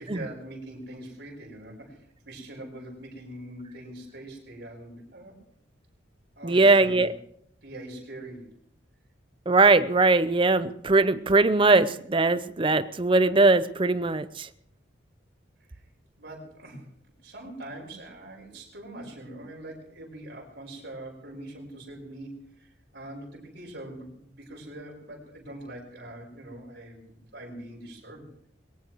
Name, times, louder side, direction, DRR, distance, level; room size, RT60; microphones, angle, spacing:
voice 1, 0.0-5.4 6.4-7.1 7.6-8.5 16.2-16.9 17.2-28.5, right 1 dB, 60° right, -1 dB, 5.4 m, -43 dB
voice 2, 6.4-7.1 9.5-14.5, right 3 dB, 25° right, 13 dB, 0.6 m, -20 dB
21.5 x 19.0 x 3.1 m, 0.68 s
head